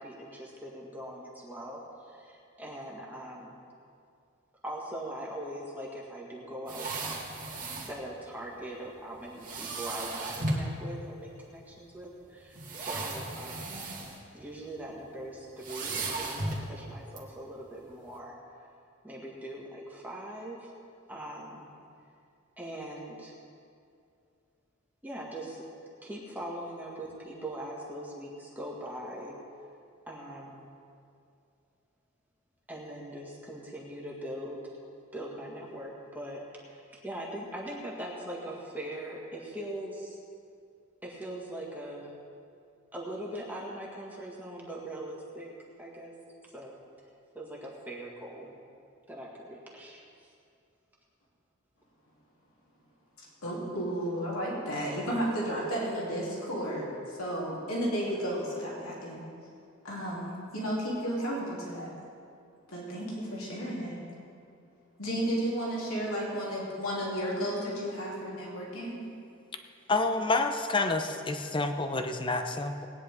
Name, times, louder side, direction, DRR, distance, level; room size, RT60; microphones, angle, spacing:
voice 1, 0.0-3.5 4.6-7.5 7.8-13.8 14.3-18.3 19.0-20.7 21.1-21.7 22.6-23.3 25.0-25.6 26.0-29.3 30.1-30.7 32.7-34.8 35.1-40.2 41.0-42.1 42.9-45.5 45.8-46.1 46.5-46.7 47.3-48.5 49.1-50.0, right 1 dB, 10° right, -3 dB, 1.9 m, -41 dB
sound 1, 6.7-8.0 9.4-10.7 11.6-11.7 12.5-14.2 14.5-14.8 15.6-16.7 17.2-17.3, right 2 dB, 40° right, 2.0 m, -35 dB
voice 2, 53.2-59.2 59.8-61.9 62.7-64.0 65.0-69.0, equal, 85° left, -5 dB, 3.0 m, -33 dB
voice 3, 69.9-72.9, left 2 dB, 25° left, 6 dB, 0.7 m, -28 dB
19.0 x 9.9 x 3.6 m, 2.4 s
head